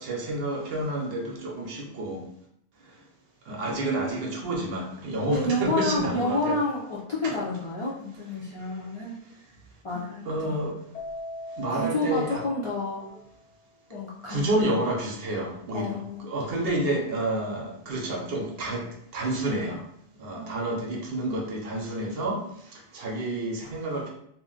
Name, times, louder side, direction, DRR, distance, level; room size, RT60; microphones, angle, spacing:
voice 1, 0.0-2.2 3.5-6.6 9.9-10.0 10.3-10.7 11.6-12.4 14.3-18.9 19.1-19.8 20.2-22.4 22.7-24.1, right 1 dB, 65° right, 0 dB, 0.8 m, -29 dB
voice 2, 5.3-9.2 9.8-10.6 11.7-13.1 13.9-14.5 15.7-16.3 20.3-20.8 21.1-21.3, left 2 dB, 45° left, -7 dB, 0.4 m, -30 dB
Keyboard (musical), 10.9-13.4, left 1 dB, 85° left, 0.9 m, -41 dB
2.4 x 2.1 x 3.7 m, 0.72 s
omnidirectional pair, 1.1 m